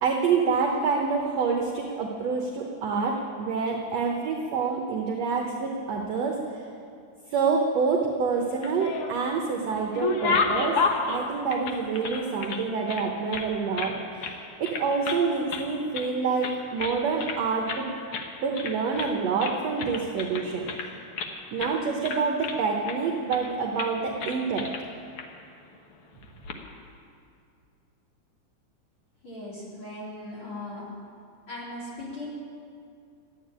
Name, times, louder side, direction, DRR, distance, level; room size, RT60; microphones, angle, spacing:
voice 1, 0.0-6.4 7.3-10.8 11.1-17.9 18.4-20.7 21.5-24.7, right 5 dB, 65° right, 1 dB, 1.7 m, -27 dB
sound 1, 8.5-9.3 9.7-12.6 12.9-13.9 14.2-14.4 14.6-15.2 15.5-16.1 16.4-17.4 17.7-17.9 18.1-18.3 18.5-19.1 19.4-21.3 21.6-21.8 22.0-23.0 23.3-23.5 23.8-23.9 24.2-24.8 25.2-25.3 26.2-26.6, left 4 dB, 70° left, 1.3 m, -30 dB
voice 2, 29.2-30.9 31.5-32.3, left 1 dB, 35° left, -5 dB, 3.6 m, -38 dB
14.0 x 9.3 x 9.8 m, 2.4 s
omnidirectional pair, 4.3 m